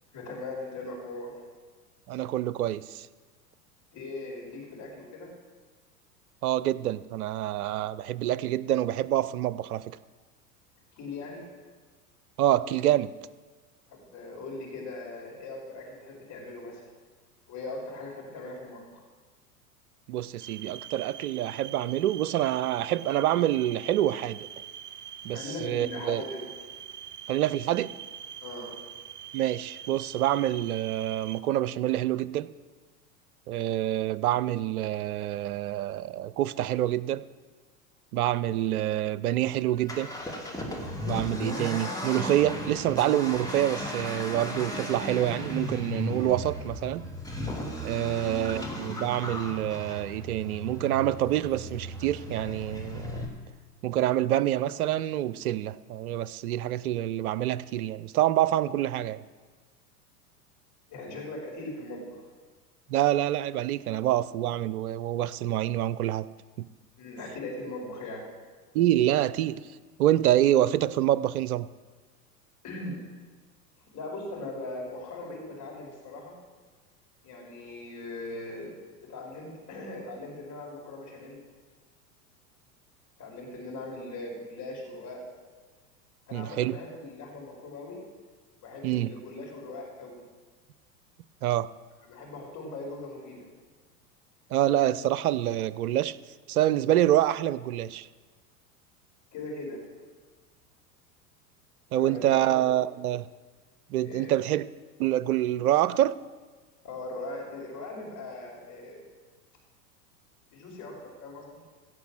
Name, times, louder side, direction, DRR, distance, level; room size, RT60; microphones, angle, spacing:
voice 1, 0.1-1.3 3.9-5.3 11.0-11.4 13.9-16.8 17.5-19.0 25.3-26.5 28.4-28.7 48.0-48.3 60.9-62.3 67.0-68.2 72.6-73.0 73.9-76.3 77.2-78.7 79.0-81.4 83.2-85.2 86.3-88.0 88.6-90.2 92.1-93.5 99.3-99.8 101.9-102.5 104.0-104.3 106.8-109.1 110.5-111.5, left 2 dB, 40° left, -2 dB, 5.0 m, -40 dB
voice 2, 2.1-3.1 6.4-10.0 12.4-13.1 20.1-24.5 25.2-26.2 27.3-27.9 29.3-32.5 33.5-37.2 38.1-40.1 41.0-47.1 47.8-53.3 53.8-59.2 62.9-66.3 66.6-66.7 68.7-69.6 70.0-71.7 86.3-86.8 88.8-89.1 91.4-91.7 94.5-96.2 96.5-98.1 101.9-103.3 103.9-104.6 105.0-106.2, right 13 dB, 65° right, 18 dB, 0.6 m, -26 dB
sound 1, 20.4-31.4, right 9 dB, 25° right, 0.6 m, -44 dB
Accelerating revving vroom, 39.7-53.2, left 1 dB, 10° left, 2.7 m, -36 dB
16.5 x 6.2 x 7.6 m, 1.4 s
hypercardioid pair, 90°, 46 cm